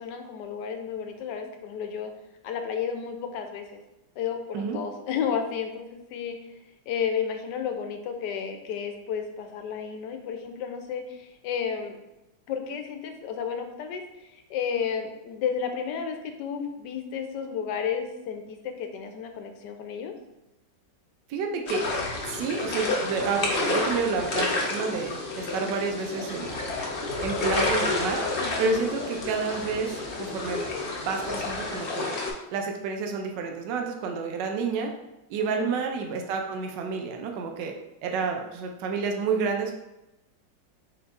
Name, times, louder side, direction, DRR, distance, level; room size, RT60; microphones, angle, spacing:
voice 1, 0.0-2.1 2.4-3.8 4.2-6.4 6.9-12.0 12.5-20.1 28.4-28.7 35.4-35.7, left 7 dB, 75° left, 5 dB, 1.2 m, -32 dB
voice 2, 21.3-21.9 22.2-26.6 27.2-28.2 28.6-30.7 31.0-32.2 32.5-34.9 35.3-37.7 38.0-39.7, right 5 dB, 80° right, 3 dB, 1.2 m, -29 dB
sound 1, 21.7-32.3, left 3 dB, 55° left, 0.8 m, -30 dB
4.6 x 4.3 x 2.5 m, 0.94 s
omnidirectional pair, 2.0 m